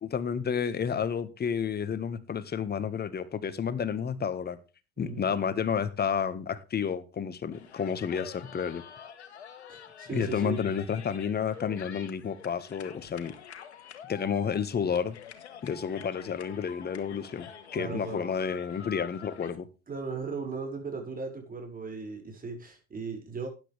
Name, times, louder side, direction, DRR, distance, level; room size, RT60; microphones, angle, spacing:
voice 1, 0.0-4.6 5.0-8.8 10.1-13.3 14.1-15.2 15.6-19.7, left 7 dB, 30° left, 1.7 m, -31 dB
voice 2, 5.0-5.3 9.7-10.6 17.7-18.3 19.9-23.5, right 4 dB, 25° right, 6.1 m, -37 dB
sound 1, 7.5-19.6, left 7 dB, 85° left, 1.7 m, -47 dB
13.0 x 10.5 x 3.5 m
hypercardioid pair, 75°, 32 cm